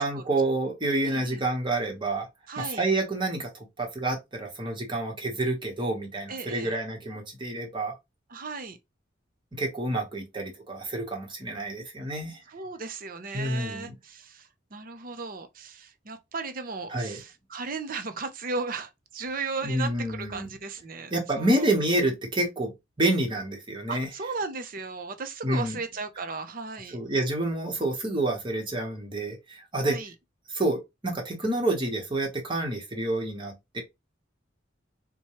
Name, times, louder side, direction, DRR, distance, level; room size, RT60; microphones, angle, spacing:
voice 1, 0.0-2.3 2.6-7.9 9.5-12.4 13.3-13.9 16.9-17.2 19.6-20.5 21.1-22.7 23.0-24.1 25.4-25.8 26.9-30.0 30.5-33.8, right 1 dB, 25° right, 1.1 m, -28 dB
voice 2, 1.0-1.4 2.5-2.8 6.3-6.8 8.3-8.8 12.5-21.7 23.9-27.0 29.8-30.1, right 4 dB, 45° right, 0.6 m, -36 dB
4.3 x 2.2 x 3.0 m
head